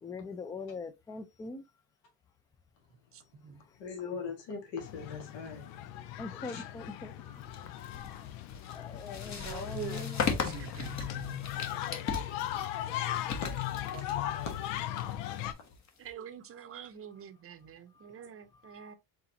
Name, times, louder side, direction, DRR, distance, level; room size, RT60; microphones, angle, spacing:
voice 1, 0.0-1.6 6.2-7.4 7.9-8.2 8.7-10.5 18.0-18.1 18.6-18.9, left 4 dB, 10° left, 0.3 m, -43 dB
voice 2, 3.1-3.6 10.3-11.5 16.0-18.9, right 8 dB, 30° right, 0.7 m, -47 dB
voice 3, 3.8-5.9 6.5-6.6 7.7-7.8 8.7-8.8 13.4-13.5 15.2-15.4, left 5 dB, 75° left, 1.8 m, -41 dB
sound 1, 4.8-15.5, left 13 dB, 90° left, 0.6 m, -38 dB
sound 2, 7.4-16.1, left 5 dB, 35° left, 1.0 m, -38 dB
voice 4, 9.2-10.5 11.9-12.9 13.9-14.4, right 11 dB, 80° right, 0.9 m, -46 dB
4.2 x 3.8 x 2.8 m
cardioid pair, 105°, 45 cm